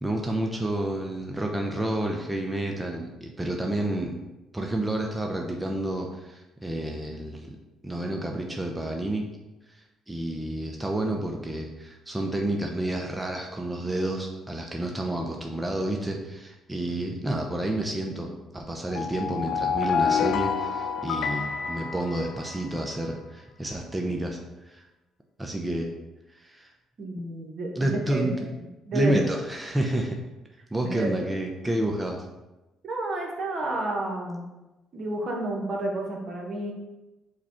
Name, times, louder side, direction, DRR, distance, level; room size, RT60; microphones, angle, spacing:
voice 1, 0.0-4.2 4.5-7.6 7.8-9.3 9.7-24.4 24.7-24.8 25.4-25.9 26.3-26.7 27.8-28.5 28.9-30.2 30.7-32.2, right 1 dB, 10° right, 1 dB, 0.6 m, -30 dB
sound 1, 18.9-22.9, left 7 dB, 70° left, 0.3 m, -28 dB
voice 2, 27.0-28.3 28.9-29.2 30.8-31.2 32.8-34.4 34.9-36.7, right 2 dB, 55° right, 0 dB, 1.0 m, -30 dB
4.8 x 2.3 x 4.3 m, 1.0 s
supercardioid pair, 70°, 0 cm